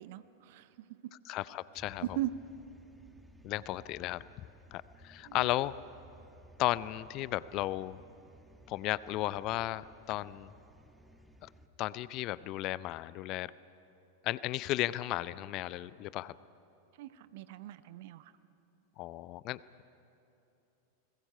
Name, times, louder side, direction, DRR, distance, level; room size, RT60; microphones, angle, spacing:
voice 1, 0.0-1.1 2.0-2.3 5.3-5.5 17.0-18.3, right 15 dB, 50° right, 14 dB, 0.7 m, -39 dB
voice 2, 1.3-2.0 3.4-4.2 4.7-5.7 6.6-8.0 8.7-10.5 11.4-11.5 11.8-13.5 14.2-16.3 19.0-19.8, left 16 dB, 40° left, 19 dB, 0.5 m, -34 dB
sound 1, 1.8-11.7, right 1 dB, 5° right, 1.4 m, -58 dB
29.5 x 21.0 x 5.6 m, 2.9 s
figure-of-eight pair, 90°, 0 cm